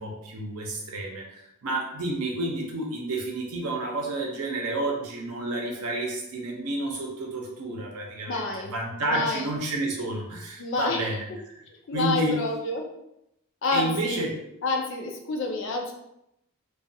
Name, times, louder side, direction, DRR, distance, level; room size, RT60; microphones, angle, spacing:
voice 1, 0.0-11.6 11.9-12.4 13.7-14.3, right 2 dB, 85° right, 0 dB, 0.6 m, -30 dB
voice 2, 8.3-8.7 9.0-9.5 10.6-11.1 11.7-12.9 13.6-14.2 14.6-15.9, left 3 dB, 55° left, 2 dB, 0.4 m, -28 dB
2.3 x 2.3 x 2.6 m, 0.82 s
head